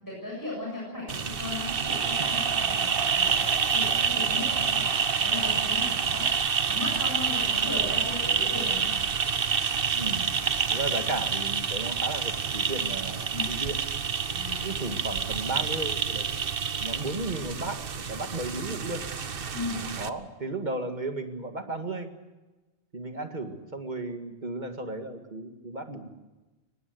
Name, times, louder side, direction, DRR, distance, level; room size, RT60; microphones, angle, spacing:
voice 1, 0.0-8.9 13.3-13.5 14.3-15.0 19.5-19.8, left 2 dB, 20° left, -4 dB, 7.4 m, -37 dB
sound 1, 1.1-20.1, right 6 dB, 60° right, 1.2 m, -28 dB
voice 2, 10.0-10.3 10.7-13.8 14.6-16.4 16.8-19.0 20.0-22.1 22.9-26.1, right 2 dB, 45° right, 6 dB, 2.2 m, -34 dB
23.5 x 20.0 x 8.0 m, 1.1 s
omnidirectional pair, 1.1 m